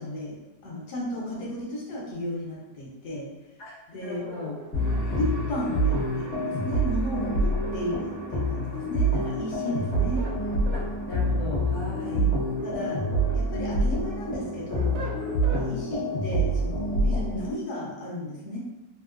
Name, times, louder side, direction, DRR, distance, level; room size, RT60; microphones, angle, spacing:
voice 1, 0.0-3.3 3.9-4.3 5.1-10.2 12.0-12.3 12.6-13.1 13.3-15.1 15.4-18.6, left 1 dB, 70° left, -4 dB, 1.3 m, -34 dB
voice 2, 4.0-4.6 5.0-5.3 7.4-7.5 9.6-9.7 10.7-10.8 11.1-12.2, left 4 dB, 25° left, -8 dB, 0.7 m, -36 dB
sound 1, 4.0-6.1 7.4-8.5 9.7-10.9 12.3-13.4 13.9-15.7, right 3 dB, 80° right, 1.3 m, -41 dB
sound 2, 4.7-17.5, right 1 dB, 45° left, 1.1 m, -27 dB
3.4 x 2.9 x 2.4 m, 1.0 s
omnidirectional pair, 1.9 m